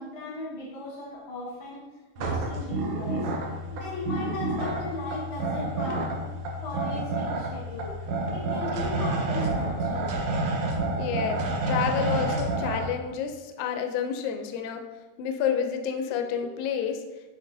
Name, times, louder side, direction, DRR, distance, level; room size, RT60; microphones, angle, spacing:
voice 1, 0.0-1.9 2.2-3.3 3.7-6.3 6.6-10.2, left 2 dB, 55° left, -3 dB, 1.5 m, -37 dB
sound 1, 2.2-12.9, right 2 dB, 70° right, 1.4 m, -29 dB
voice 2, 11.0-14.8 15.2-17.0, left 7 dB, 80° left, 6 dB, 1.9 m, -29 dB
8.2 x 4.4 x 2.6 m, 1.1 s
omnidirectional pair, 3.5 m